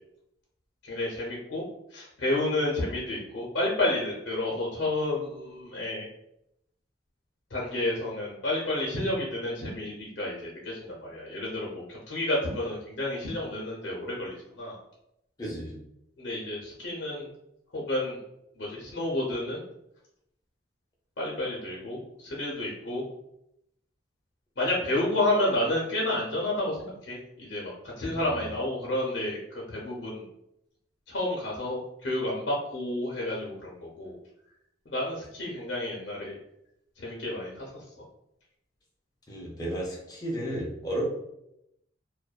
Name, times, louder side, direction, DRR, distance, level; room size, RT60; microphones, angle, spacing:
voice 1, 0.8-1.6 1.9-6.1 7.5-14.8 16.2-17.3 17.7-18.2 18.6-19.6 21.2-23.0 24.6-27.7 28.0-30.2 31.1-34.2 34.9-36.4 37.0-37.8, left 1 dB, 70° left, -4 dB, 0.6 m, -30 dB
voice 2, 15.4-15.8 28.0-28.4 39.3-41.0, equal, 20° left, -3 dB, 0.5 m, -34 dB
2.6 x 2.1 x 2.3 m, 0.81 s
head